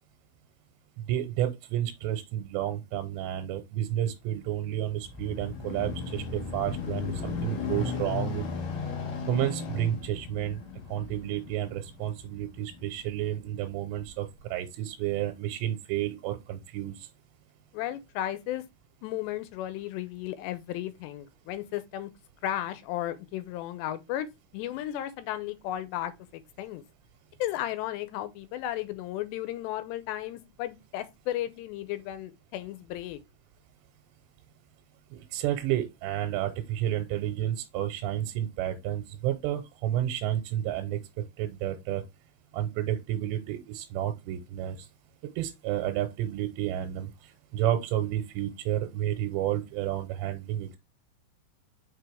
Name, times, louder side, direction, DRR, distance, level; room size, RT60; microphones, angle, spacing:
voice 1, 1.1-8.4 9.3-10.6 10.9-17.1 35.1-42.0 42.5-44.9 45.4-50.8, right 12 dB, 90° right, 2.9 m, -31 dB
sound 1, 4.6-13.4 14.0-14.1, left 5 dB, 55° left, 3.3 m, -36 dB
voice 2, 17.7-18.6 19.0-22.1 22.4-24.3 24.5-26.8 27.4-33.2, left 13 dB, 85° left, 2.9 m, -34 dB
6.2 x 4.6 x 3.3 m
omnidirectional pair, 5.0 m